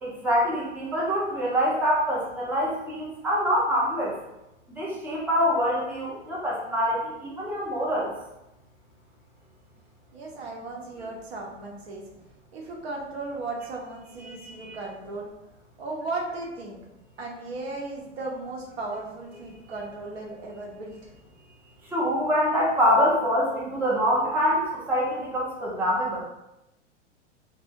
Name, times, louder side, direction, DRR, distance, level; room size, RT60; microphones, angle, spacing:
voice 1, 0.0-4.1 4.8-8.1 14.2-14.8 21.9-26.2, equal, 5° right, -5 dB, 0.5 m, -25 dB
voice 2, 10.1-12.0 12.5-15.3 15.8-16.8 17.2-21.1, right 3 dB, 60° right, -1 dB, 0.9 m, -36 dB
2.5 x 2.1 x 3.5 m, 0.92 s
figure-of-eight pair, 95°, 36 cm